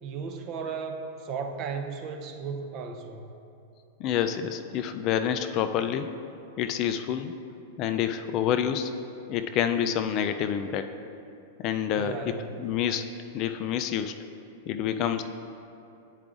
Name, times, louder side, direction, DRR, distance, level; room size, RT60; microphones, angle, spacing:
voice 1, 0.0-3.3 11.9-12.7, right 5 dB, 35° right, 5 dB, 0.5 m, -35 dB
voice 2, 4.0-6.1 6.6-7.3 7.8-8.9 9.3-10.9 11.6-12.2 12.6-13.0 13.3-14.2 14.7-15.2, left 9 dB, 40° left, 9 dB, 0.3 m, -27 dB
10.5 x 4.8 x 2.5 m, 2.8 s
supercardioid pair, 145°, 0 cm